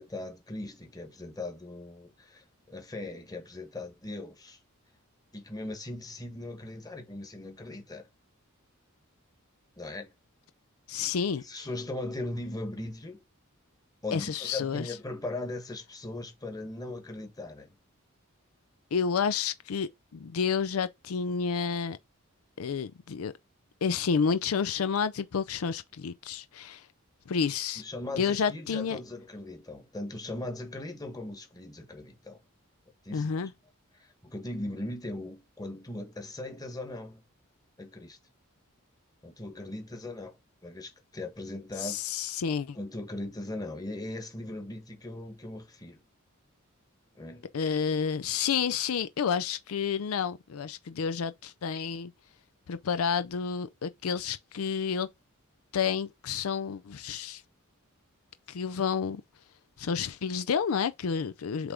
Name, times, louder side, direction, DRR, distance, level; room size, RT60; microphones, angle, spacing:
voice 1, 0.0-4.6 5.3-8.1 9.8-10.1 11.4-13.2 14.0-17.7 27.8-32.4 33.0-33.3 33.9-37.2 37.8-38.2 39.2-40.4 40.6-42.0 42.7-46.0 47.1-47.5, left 2 dB, 20° left, 1.4 m, -39 dB
voice 2, 10.9-11.4 14.1-14.9 18.9-22.0 22.6-23.3 23.8-26.9 27.3-27.8 28.2-29.0 33.1-33.5 41.8-42.8 47.5-52.1 52.7-55.1 55.7-57.4 58.5-59.2 59.8-61.7, left 6 dB, 80° left, 0.5 m, -30 dB
7.9 x 3.4 x 3.7 m
head